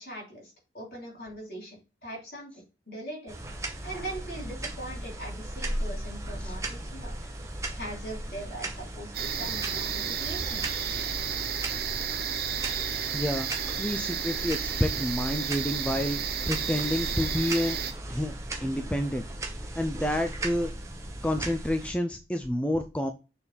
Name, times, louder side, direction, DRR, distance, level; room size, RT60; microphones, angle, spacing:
voice 1, 0.0-2.5 2.9-3.3 3.8-7.1 7.7-10.7, right 1 dB, 55° left, -3 dB, 3.9 m, -41 dB
sound 1, 3.3-21.9, right 1 dB, 15° right, 0.8 m, -37 dB
sound 2, 9.1-17.9, right 8 dB, 55° right, 0.8 m, -32 dB
voice 2, 13.1-13.5 13.8-16.2 16.4-17.8 18.1-18.3 18.6-19.2 19.8-20.7 21.2-23.1, left 1 dB, 5° left, 6 dB, 0.4 m, -29 dB
6.6 x 3.5 x 4.3 m, 0.31 s
head